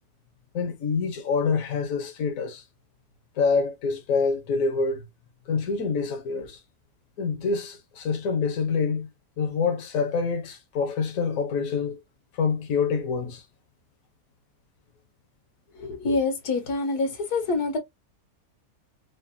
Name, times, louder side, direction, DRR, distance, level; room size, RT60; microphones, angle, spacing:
voice 1, 0.5-2.6 3.3-5.0 5.5-6.6 7.2-9.1 9.4-12.0 12.3-13.4, left 5 dB, 65° left, 1.3 m, -26 dB
voice 2, 15.8-17.8, left 3 dB, 85° left, 1.9 m, -26 dB
5.0 x 2.5 x 2.7 m
omnidirectional pair, 1.6 m